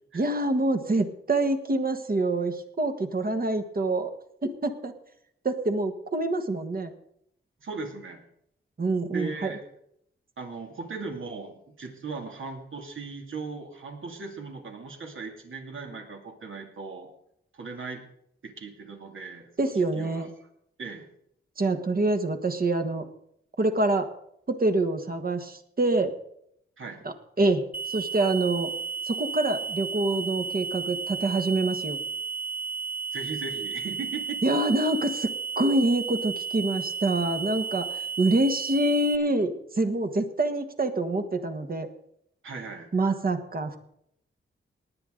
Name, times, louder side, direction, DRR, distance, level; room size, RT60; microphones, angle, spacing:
voice 1, 0.1-4.1 4.4-4.9 5.4-6.9 8.8-9.5 19.6-20.3 21.6-23.1 23.6-24.1 24.5-26.1 27.4-28.7 29.1-32.0 34.4-41.9 42.9-43.8, right 2 dB, 45° right, 7 dB, 1.4 m, -26 dB
voice 2, 7.6-8.2 9.0-9.6 10.4-17.1 17.5-18.0 18.4-20.5 20.8-21.1 26.8-27.0 33.1-34.4 42.4-42.9, right 4 dB, 75° right, 2 dB, 2.5 m, -38 dB
sound 1, 27.7-39.2, right 6 dB, 10° right, 0.6 m, -33 dB
19.5 x 8.9 x 3.8 m, 0.73 s
wide cardioid pair, 95°, 21 cm